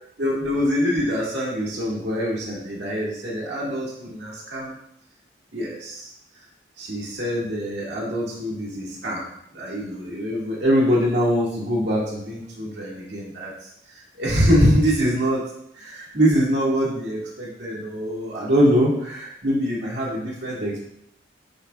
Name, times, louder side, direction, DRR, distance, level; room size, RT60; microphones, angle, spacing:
voice 1, 0.2-4.7 5.5-6.1 6.8-9.3 9.5-13.5 13.9-15.4 15.7-20.8, equal, 65° right, -5 dB, 1.9 m, -23 dB
12.0 x 5.0 x 2.3 m, 0.75 s
head